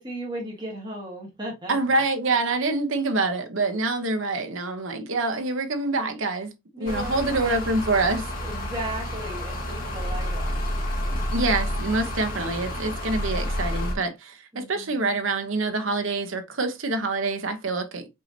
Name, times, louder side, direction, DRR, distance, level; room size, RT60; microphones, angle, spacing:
voice 1, 0.0-2.0 6.7-7.6 8.4-10.8 11.1-11.2 14.5-15.0, right 1 dB, 20° right, 1.7 m, -37 dB
voice 2, 1.7-8.3 11.3-18.2, right 3 dB, 65° right, 0.9 m, -26 dB
sound 1, 6.9-13.9, equal, 40° left, 1.3 m, -29 dB
5.4 x 3.3 x 2.8 m
head